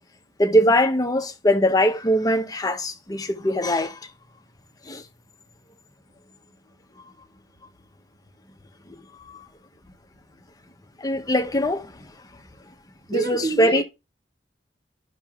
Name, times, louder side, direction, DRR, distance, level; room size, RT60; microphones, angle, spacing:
voice 1, 0.4-4.1 4.9-5.0 7.0-7.1 8.9-9.5 11.0-12.1 13.1-13.8, equal, 20° left, 0.8 m, -22 dB
voice 2, 13.1-13.8, right 3 dB, 65° right, 0.6 m, -27 dB
12.0 x 5.8 x 2.4 m
head